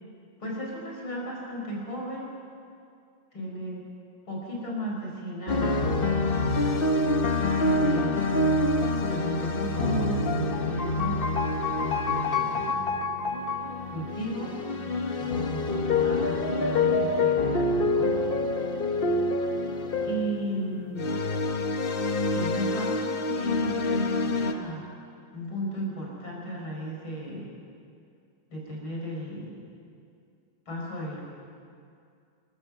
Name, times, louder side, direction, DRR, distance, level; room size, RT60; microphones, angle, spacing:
voice 1, 0.4-2.3 3.3-3.9 4.3-6.0 7.6-8.6 9.1-11.2 11.8-12.8 13.9-14.8 15.2-18.2 20.0-21.2 22.3-24.9 25.3-27.5 28.5-29.6 30.7-31.3, equal, 75° left, -2 dB, 5.7 m, -35 dB
sound 1, 5.5-24.5, left 2 dB, 40° left, 0.9 m, -26 dB
27.0 x 13.5 x 7.4 m, 2.4 s
omnidirectional pair, 2.2 m